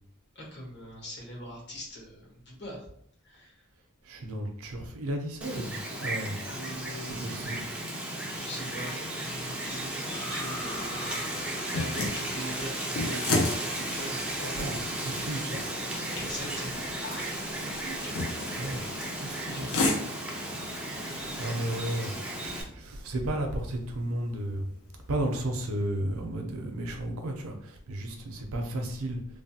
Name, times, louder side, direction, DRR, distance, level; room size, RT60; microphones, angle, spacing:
voice 1, 0.3-2.8 3.2-3.6 6.4-7.7 8.4-11.4 11.7-14.5 16.2-18.7 19.2-19.7 21.4-22.7, equal, 50° left, -4 dB, 1.1 m, -42 dB
voice 2, 4.0-6.4 7.0-7.6 14.6-15.8 18.6-19.9 21.4-22.1 22.4-24.7 25.1-29.2, right 1 dB, 70° right, 3 dB, 0.5 m, -33 dB
Wind, 5.4-22.6, right 1 dB, 5° right, 0.3 m, -35 dB
sound 1, 10.0-13.1 14.3-14.4, left 1 dB, 30° left, 0.8 m, -43 dB
sound 2, 10.3-25.8, left 2 dB, 70° left, 0.6 m, -36 dB
3.2 x 2.2 x 2.7 m, 0.65 s
head